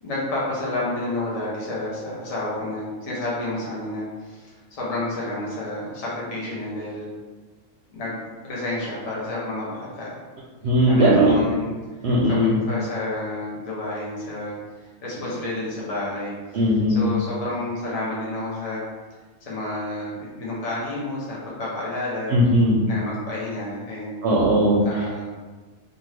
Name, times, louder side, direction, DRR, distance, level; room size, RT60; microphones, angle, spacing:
voice 1, 0.0-7.1 7.9-10.2 10.7-11.8 12.2-18.8 19.4-22.3 22.9-24.2 24.8-25.3, left 2 dB, 40° left, -6 dB, 0.5 m, -30 dB
voice 2, 10.6-11.3 12.0-12.6 16.5-17.0 22.3-22.8 24.2-24.8, equal, 65° right, -6 dB, 0.7 m, -18 dB
2.6 x 2.5 x 3.1 m, 1.3 s
omnidirectional pair, 1.4 m